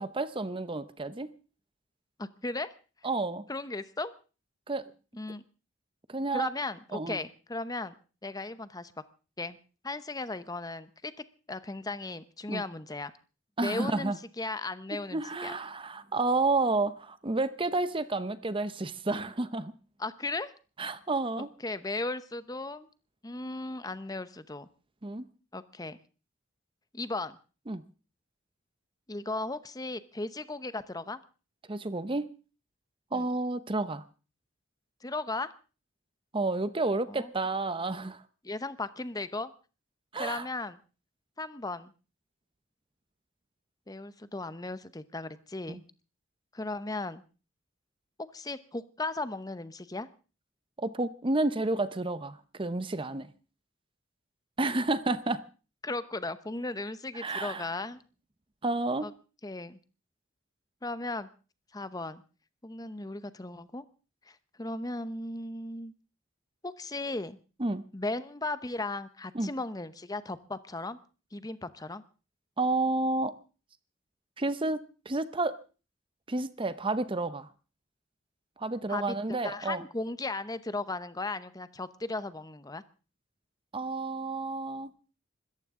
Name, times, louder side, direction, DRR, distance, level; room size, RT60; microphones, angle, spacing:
voice 1, 0.0-1.3 3.0-3.4 4.7-4.9 6.1-6.5 6.9-7.2 12.5-12.6 13.6-14.2 14.9-19.7 20.8-21.5 25.0-25.3 27.7-27.8 31.7-32.3 33.1-34.0 36.3-38.2 40.1-40.5 45.7-45.8 50.8-53.3 54.6-55.4 57.1-57.7 58.6-59.1 67.6-67.8 69.3-69.5 72.6-73.3 74.4-75.6 76.3-77.5 78.6-79.8 83.7-84.9, right 2 dB, 25° right, 0.7 m, -30 dB
voice 2, 2.2-2.7 3.5-4.1 5.2-5.4 6.3-7.9 8.2-8.9 9.4-9.6 9.8-11.1 11.5-13.1 13.6-15.5 20.0-20.5 21.4-22.9 23.2-24.7 25.5-26.0 26.9-27.4 29.1-31.2 33.1-33.3 35.0-35.5 37.1-37.3 38.4-39.5 40.2-40.8 41.4-41.9 43.9-45.8 46.5-47.2 48.3-50.1 55.8-58.0 59.0-59.1 59.4-59.8 60.8-61.3 61.7-62.2 62.6-63.8 64.3-65.9 66.6-67.4 67.9-71.0 71.3-72.0 78.9-82.8, left 2 dB, 20° left, 0.8 m, -36 dB
25.0 x 14.0 x 3.7 m
head